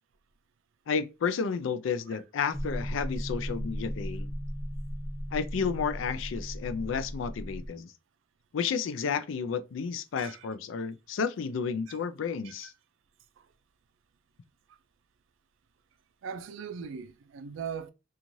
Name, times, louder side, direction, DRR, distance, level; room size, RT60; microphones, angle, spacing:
voice 1, 0.9-4.3 5.3-7.9 8.5-12.7, left 6 dB, 80° left, 0.4 m, -31 dB
sound 1, 2.5-7.7, equal, 15° right, 0.6 m, -36 dB
voice 2, 16.2-17.9, right 6 dB, 80° right, 0.4 m, -40 dB
2.6 x 2.4 x 3.0 m
head